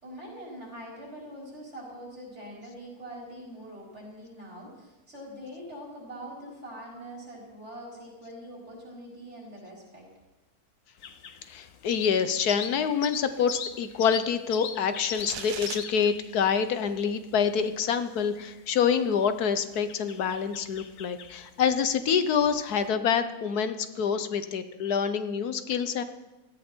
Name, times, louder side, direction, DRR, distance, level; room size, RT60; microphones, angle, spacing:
voice 1, 0.0-10.1, equal, 45° right, -4 dB, 6.1 m, -43 dB
sound 1, 11.0-22.9, left 7 dB, 60° left, 1.2 m, -42 dB
voice 2, 11.5-26.0, left 7 dB, 80° left, 11 dB, 1.4 m, -26 dB
sound 2, 15.2-15.8, right 9 dB, 90° right, 1.4 m, -38 dB
17.0 x 14.5 x 4.5 m, 1.0 s
omnidirectional pair, 1.6 m